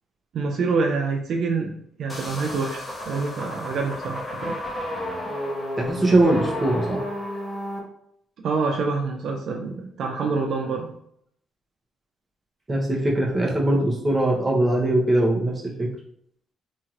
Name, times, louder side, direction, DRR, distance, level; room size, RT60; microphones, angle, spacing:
voice 1, 0.3-4.6 8.4-11.0, right 4 dB, 70° right, 2 dB, 0.4 m, -26 dB
sound 1, 2.1-7.8, left 1 dB, 20° left, 0.9 m, -32 dB
voice 2, 5.8-7.0 12.7-15.9, right 1 dB, 25° right, -2 dB, 0.8 m, -21 dB
2.9 x 2.8 x 2.4 m, 0.69 s
cardioid pair, 90°, 0 cm